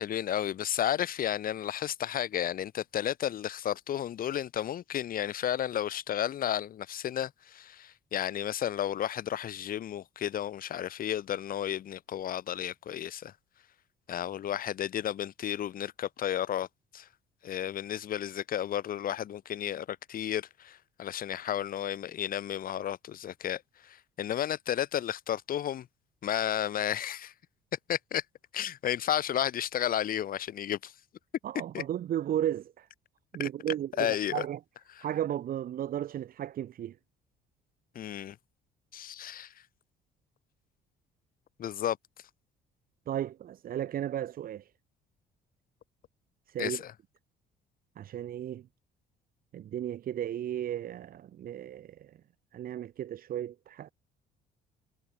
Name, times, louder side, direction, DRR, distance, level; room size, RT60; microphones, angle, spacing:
voice 1, 0.0-13.3 14.1-16.7 16.9-17.1 17.4-25.9 26.2-27.3 27.9-28.2 28.5-30.9 31.7-31.8 33.4-33.5 34.0-34.4 35.0-35.1 37.9-38.4 38.9-39.5 41.6-42.0 46.6-46.9, left 10 dB, 55° left, 6.3 m, -32 dB
voice 2, 31.4-32.9 33.3-34.6 35.0-37.0 43.1-44.7 46.5-46.8 48.0-48.7 49.5-52.2 52.5-53.9, right 11 dB, 60° right, 3.7 m, -34 dB
cardioid pair, 110°, 17 cm